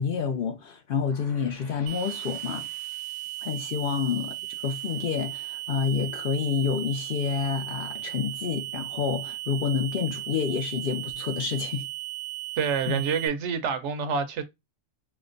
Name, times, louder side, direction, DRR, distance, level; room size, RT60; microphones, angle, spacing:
voice 1, 0.0-2.7 3.4-4.4 4.6-11.9 12.9-13.0, left 6 dB, 60° left, 0.6 m, -28 dB
sound 1, 1.1-7.0, left 1 dB, 25° left, 1.0 m, -54 dB
sound 2, 1.9-13.3, right 17 dB, 45° right, 0.5 m, -36 dB
voice 2, 12.6-14.4, right 6 dB, 75° right, 0.9 m, -27 dB
4.9 x 2.0 x 2.5 m
omnidirectional pair, 1.2 m